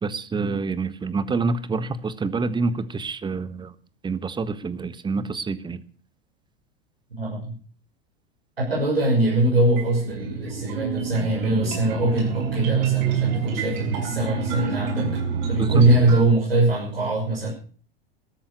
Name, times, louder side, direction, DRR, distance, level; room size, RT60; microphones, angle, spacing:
voice 1, 0.0-3.7 4.0-5.8 15.6-15.8, right 4 dB, 15° right, 15 dB, 1.4 m, -27 dB
voice 2, 7.1-7.5 8.6-15.1 15.5-17.5, right 2 dB, 80° right, -3 dB, 6.5 m, -22 dB
sound 1, 9.1-16.2, right 6 dB, 55° right, 6.3 m, -28 dB
13.5 x 13.5 x 6.6 m, 0.42 s
figure-of-eight pair, 85°, 29 cm